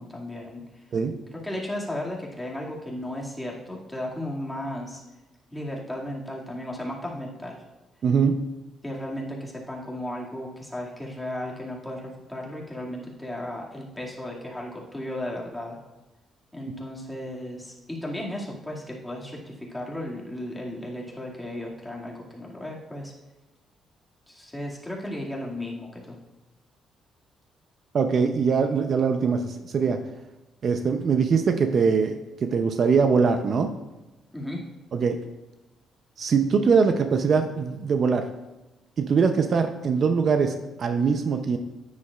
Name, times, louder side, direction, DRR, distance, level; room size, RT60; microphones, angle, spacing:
voice 1, 0.0-0.8 1.3-5.0 5.5-7.6 8.8-15.8 16.5-23.1 24.3-26.2 34.3-34.6, left 1 dB, 10° left, -3 dB, 2.3 m, -35 dB
voice 2, 8.0-8.4 27.9-30.0 30.6-33.7 34.9-35.2 36.2-38.3 39.0-41.6, right 5 dB, 55° right, 7 dB, 0.6 m, -22 dB
9.7 x 9.6 x 2.5 m, 1.0 s
cardioid pair, 90°, 0 cm